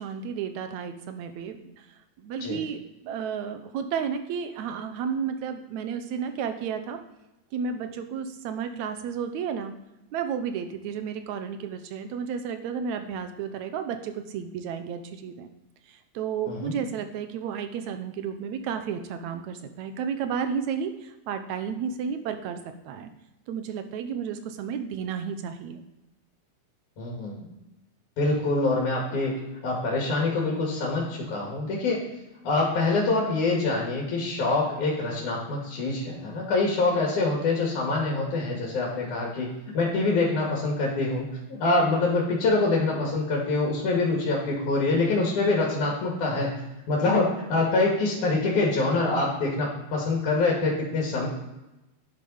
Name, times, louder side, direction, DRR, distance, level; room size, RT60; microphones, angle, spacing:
voice 1, 0.0-1.9 2.2-7.0 7.5-9.7 10.1-15.5 15.9-23.1 23.5-25.8, right 7 dB, 75° right, 8 dB, 2.2 m, -32 dB
voice 2, 16.5-16.8 27.0-27.5 28.2-29.3 29.6-32.0 32.4-46.5 46.9-51.3, left 3 dB, 85° left, -3 dB, 3.5 m, -25 dB
10.5 x 7.5 x 5.5 m, 0.96 s
omnidirectional pair, 3.4 m